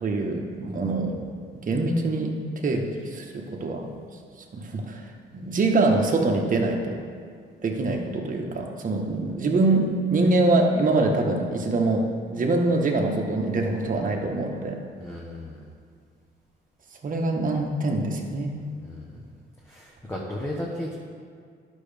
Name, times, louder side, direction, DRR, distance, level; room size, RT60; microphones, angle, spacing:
voice 1, 0.0-1.2 1.7-2.3 2.6-3.9 4.5-5.0 5.3-7.0 7.6-14.8 17.0-18.6, right 2 dB, 45° right, 1 dB, 1.2 m, -24 dB
voice 2, 15.0-15.7 18.8-19.0 19.6-21.0, left 1 dB, 10° left, -4 dB, 1.1 m, -34 dB
11.0 x 6.3 x 3.4 m, 2.1 s
cardioid pair, 90°, 20 cm